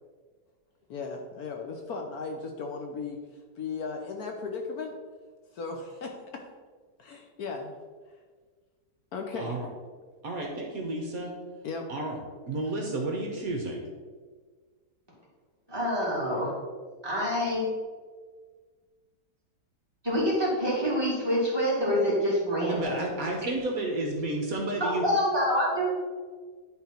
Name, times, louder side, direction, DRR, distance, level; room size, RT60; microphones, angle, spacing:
voice 1, 0.9-3.2 3.6-5.0 5.5-6.4 7.0-7.7 9.1-9.6 11.6-11.9, left 4 dB, 65° left, 2 dB, 1.2 m, -36 dB
voice 2, 9.4-9.7 10.2-11.3 11.9-12.2 12.5-13.8 22.7-25.0, right 2 dB, 55° right, 0 dB, 1.4 m, -31 dB
voice 3, 15.7-16.5 17.0-17.7 20.0-22.9 24.8-25.8, equal, 15° right, -6 dB, 2.4 m, -26 dB
10.5 x 4.0 x 4.3 m, 1.5 s
omnidirectional pair, 1.9 m